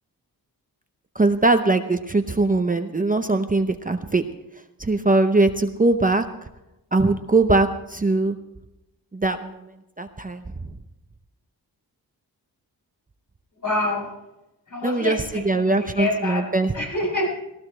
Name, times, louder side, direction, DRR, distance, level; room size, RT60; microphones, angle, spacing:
voice 1, 1.1-4.2 4.8-6.3 6.9-8.4 9.1-9.7 10.0-10.4 14.8-16.7, right 2 dB, 20° right, 7 dB, 0.7 m, -21 dB
voice 2, 13.6-14.1 14.7-16.5 16.7-17.3, left 2 dB, 55° left, -2 dB, 7.2 m, -26 dB
19.0 x 17.0 x 3.3 m, 0.95 s
wide cardioid pair, 125°, 38 cm